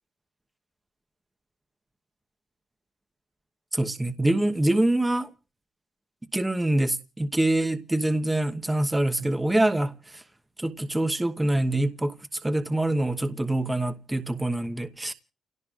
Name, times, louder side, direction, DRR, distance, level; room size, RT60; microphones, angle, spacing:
voice 1, 3.7-5.3 6.3-9.9 10.6-12.1 12.4-15.1, right 1 dB, 10° right, 1.1 m, -25 dB
29.5 x 17.5 x 2.5 m
cardioid pair, 90°, 0 cm